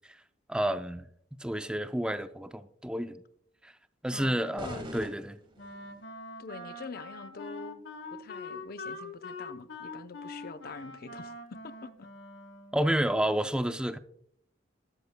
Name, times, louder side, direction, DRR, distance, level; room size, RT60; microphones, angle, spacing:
voice 1, 0.5-1.0 1.4-3.2 3.6-3.7 4.0-5.4 12.7-14.0, right 1 dB, 5° right, 0.4 m, -30 dB
voice 2, 4.1-4.8 6.4-11.9, left 4 dB, 55° left, 0.6 m, -45 dB
sound 1, 4.6-6.0, equal, 30° right, 1.5 m, -43 dB
Wind instrument woodwind instrument, 5.6-13.0, left 2 dB, 70° left, 1.1 m, -44 dB
13.0 x 12.0 x 2.2 m
head